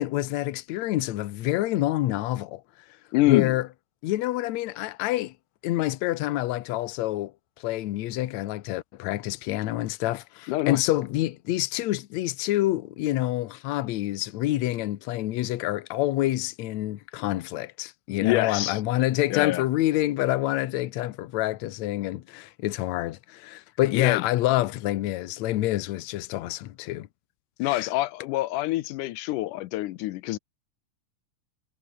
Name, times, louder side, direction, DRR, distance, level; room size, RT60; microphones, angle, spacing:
voice 1, 0.0-2.6 3.3-3.7 4.0-5.3 5.6-7.3 7.6-27.1 27.6-27.9, left 15 dB, 70° left, 2.1 m, -27 dB
voice 2, 3.1-3.6 10.5-10.8 18.2-18.8 19.3-19.6 23.9-24.2 27.6-30.4, left 17 dB, 85° left, 2.2 m, -25 dB
omnidirectional pair, 3.7 m